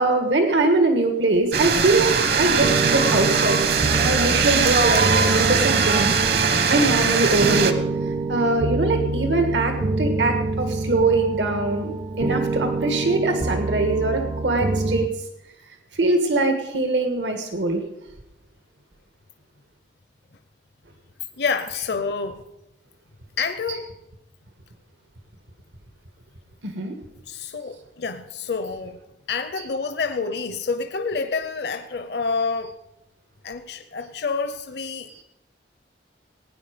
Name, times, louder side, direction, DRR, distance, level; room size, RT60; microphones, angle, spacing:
voice 1, 0.0-3.6 4.0-6.2 6.7-7.8 8.1-15.1 15.9-17.8 23.7-23.8 26.6-26.9 29.6-29.7 35.1-35.2, right 2 dB, 90° right, 6 dB, 1.5 m, -22 dB
sound 1, 1.5-7.7, right 5 dB, 60° right, 1.0 m, -20 dB
sound 2, 2.5-15.1, right 3 dB, 30° right, 0.4 m, -26 dB
voice 2, 21.4-22.4 23.4-23.9 27.3-29.0 29.3-32.8 33.4-35.2, left 4 dB, 65° left, 9 dB, 0.7 m, -28 dB
17.0 x 9.5 x 5.1 m, 0.91 s
head